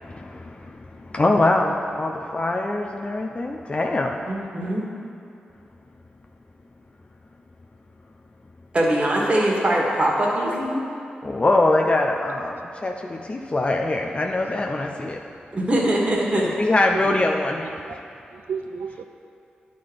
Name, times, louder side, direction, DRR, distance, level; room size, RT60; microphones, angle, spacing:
voice 1, 0.0-4.5 11.2-15.2 16.6-17.7, left 2 dB, 35° left, 1 dB, 0.5 m, -23 dB
voice 2, 4.3-4.8 8.7-10.8 15.5-16.5, right 1 dB, 35° right, -4 dB, 1.7 m, -22 dB
voice 3, 17.6-18.0 18.3-19.0, right 6 dB, 80° right, 7 dB, 0.4 m, -33 dB
10.5 x 3.8 x 5.2 m, 2.5 s
cardioid pair, 55°, 3 cm